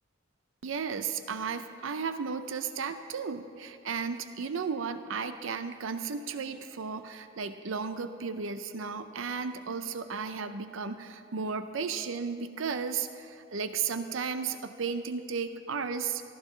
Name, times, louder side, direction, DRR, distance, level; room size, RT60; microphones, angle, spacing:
voice 1, 0.6-16.2, right 5 dB, 85° right, 10 dB, 0.6 m, -34 dB
18.5 x 15.0 x 3.2 m, 2.4 s
head